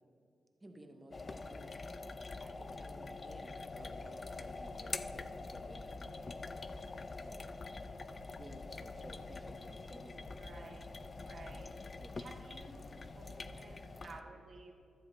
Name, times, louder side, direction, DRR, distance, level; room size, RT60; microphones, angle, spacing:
voice 1, 0.6-1.9 2.4-6.5 7.2-7.4 8.4-10.6 12.0-12.3, right 1 dB, 20° right, 5 dB, 0.9 m, -56 dB
sound 1, 1.1-14.2, left 3 dB, 35° left, 0.4 m, -45 dB
sound 2, 3.5-13.5, left 3 dB, 75° left, 0.7 m, -56 dB
voice 2, 10.4-10.9 11.2-14.7, right 3 dB, 60° right, -1 dB, 2.1 m, -54 dB
13.5 x 7.2 x 4.1 m, 2.5 s
wide cardioid pair, 115°, 0 cm